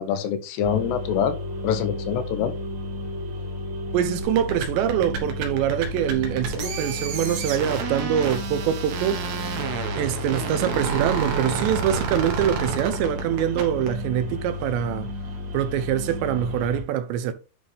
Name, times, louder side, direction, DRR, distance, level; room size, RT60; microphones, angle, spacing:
voice 1, 0.0-1.4 1.6-2.5, left 8 dB, 80° left, 2.9 m, -25 dB
sound 1, 0.6-16.8, left 2 dB, 25° right, 2.3 m, -33 dB
voice 2, 3.9-9.2 10.0-15.1 15.5-17.3, right 10 dB, 90° right, 3.1 m, -24 dB
sound 2, 4.2-13.9, right 6 dB, 75° right, 3.4 m, -30 dB
sound 3, 6.6-9.3 9.8-12.3, left 4 dB, 45° left, 2.6 m, -44 dB
10.0 x 4.0 x 3.3 m
omnidirectional pair, 4.9 m